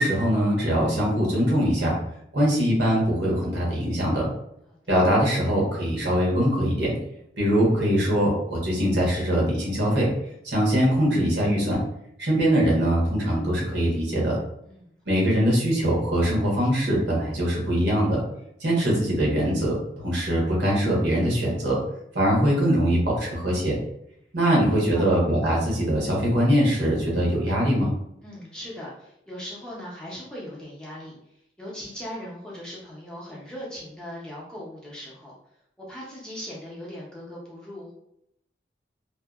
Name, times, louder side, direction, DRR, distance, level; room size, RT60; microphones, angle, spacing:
voice 1, 0.0-2.0 2.3-4.3 4.9-6.9 7.4-10.1 10.4-11.8 12.2-14.4 15.1-18.2 18.6-21.8 22.1-23.8 24.3-27.9, equal, 80° right, -4 dB, 1.0 m, -22 dB
voice 2, 24.5-25.2 28.2-31.2 31.6-35.3 35.8-37.9, equal, 5° left, -6 dB, 0.5 m, -39 dB
2.6 x 2.1 x 2.3 m, 0.77 s
head